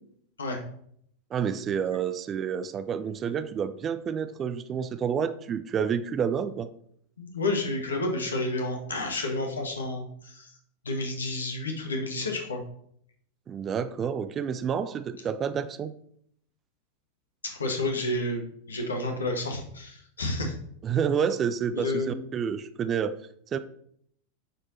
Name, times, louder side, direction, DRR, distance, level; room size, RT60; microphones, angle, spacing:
voice 1, 1.3-6.7 13.5-15.9 20.8-23.2 23.5-23.6, right 7 dB, 25° right, 12 dB, 0.5 m, -29 dB
voice 2, 7.2-10.5 10.8-12.6 17.6-20.5 21.7-22.2, left 2 dB, 70° left, 3 dB, 1.6 m, -30 dB
8.8 x 4.5 x 4.2 m, 0.67 s
figure-of-eight pair, 90°, 0 cm